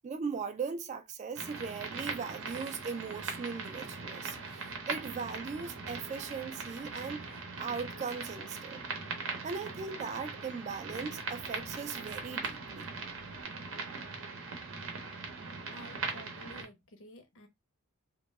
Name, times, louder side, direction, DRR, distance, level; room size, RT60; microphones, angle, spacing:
voice 1, 0.0-7.2 7.6-8.8 9.4-12.9, right 5 dB, 35° right, 0.3 m, -39 dB
sound 1, 1.4-16.6, right 4 dB, 65° right, 0.7 m, -40 dB
sound 2, 4.3-7.8 11.0-13.4, left 1 dB, 90° left, 0.9 m, -59 dB
voice 2, 15.7-17.5, left 1 dB, 60° left, 0.6 m, -52 dB
2.2 x 2.0 x 3.1 m
head